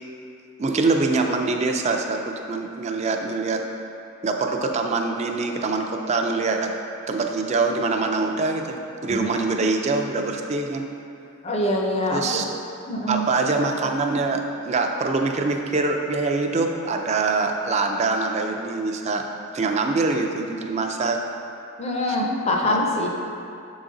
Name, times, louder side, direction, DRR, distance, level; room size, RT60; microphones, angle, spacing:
voice 1, 0.6-3.6 4.2-6.8 7.1-8.8 9.0-10.9 12.1-12.4 13.1-19.3 19.5-21.2 22.6-22.8, right 3 dB, 35° right, 3 dB, 0.4 m, -24 dB
voice 2, 11.4-12.4 12.9-13.2 21.8-23.1, left 1 dB, 30° left, 0 dB, 0.6 m, -24 dB
7.0 x 4.0 x 3.8 m, 2.6 s
head